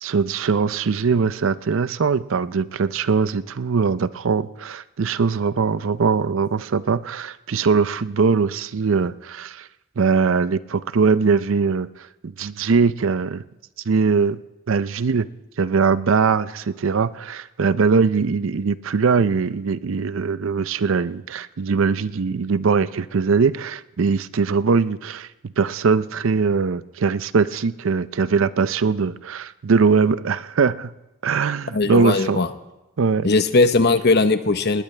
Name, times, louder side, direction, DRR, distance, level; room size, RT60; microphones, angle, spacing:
voice 1, 0.0-9.7 10.0-13.4 13.9-14.4 14.7-15.3 15.6-25.3 25.6-30.9 31.2-32.4 33.0-33.3, right 5 dB, 70° right, 16 dB, 0.5 m, -21 dB
voice 2, 31.7-32.5 33.2-34.8, left 3 dB, 55° left, 9 dB, 0.9 m, -18 dB
19.5 x 19.5 x 3.3 m, 0.99 s
head